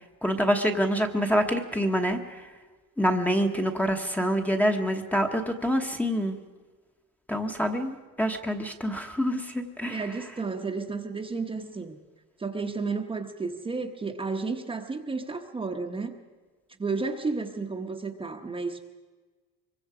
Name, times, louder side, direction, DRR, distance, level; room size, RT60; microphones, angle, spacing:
voice 1, 0.2-2.4 3.0-6.4 7.3-10.0, equal, 5° left, 4 dB, 1.1 m, -26 dB
voice 2, 9.9-12.0 12.4-16.1 16.8-18.8, right 4 dB, 15° right, 3 dB, 1.0 m, -32 dB
25.0 x 23.0 x 4.9 m, 1.4 s
cardioid pair, 170°, 33 cm